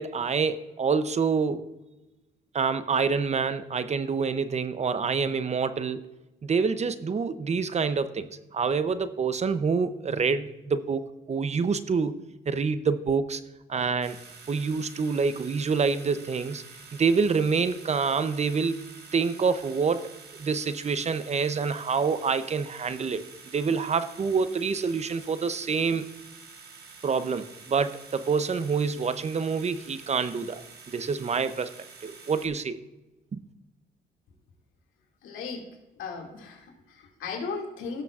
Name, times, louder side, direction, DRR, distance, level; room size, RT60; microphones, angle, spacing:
voice 1, 0.0-1.6 2.5-6.1 6.4-12.2 12.5-13.4 13.7-14.2 14.5-16.6 17.0-18.8 19.1-20.1 20.4-23.2 23.5-26.1 27.0-31.7 32.0-32.8 33.3-33.4, right 5 dB, 35° right, 12 dB, 0.7 m, -27 dB
sound 1, 14.0-32.5, right 5 dB, 55° right, 1.7 m, -48 dB
voice 2, 35.2-38.0, left 5 dB, 85° left, 1 dB, 2.4 m, -37 dB
16.5 x 6.6 x 2.5 m, 1.0 s
cardioid pair, 90°, 20 cm